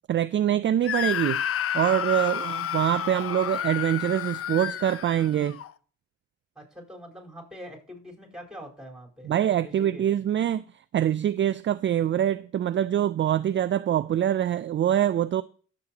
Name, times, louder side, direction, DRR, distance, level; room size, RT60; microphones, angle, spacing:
voice 1, 0.1-1.4 1.7-5.6 9.3-10.6 10.9-15.4, right 10 dB, 40° right, 0.4 m, -24 dB
Screaming, 0.8-5.7, left 10 dB, 50° left, 0.6 m, -30 dB
voice 2, 6.5-9.3 9.6-10.1, equal, ahead, 4.3 m, -44 dB
16.5 x 7.4 x 2.9 m
cardioid pair, 90°, 30 cm